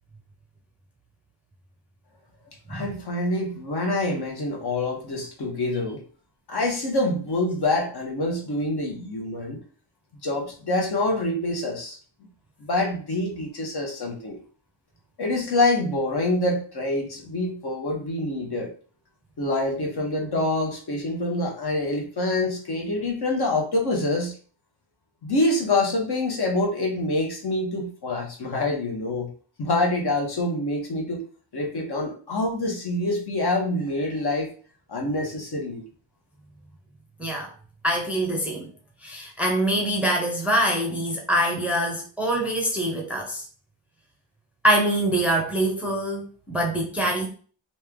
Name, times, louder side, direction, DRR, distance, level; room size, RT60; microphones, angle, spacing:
voice 1, 2.7-6.0 6.5-9.6 10.2-12.0 12.6-14.4 15.2-18.7 19.4-24.3 25.2-29.3 29.6-31.2 31.5-34.5 34.9-35.8, left 2 dB, 55° left, 2 dB, 1.1 m, -26 dB
voice 2, 37.2-37.5 37.8-38.7 39.0-43.5 44.6-47.3, right 1 dB, 5° right, -1 dB, 0.6 m, -24 dB
3.2 x 2.8 x 3.5 m, 0.40 s
wide cardioid pair, 170°, 45 cm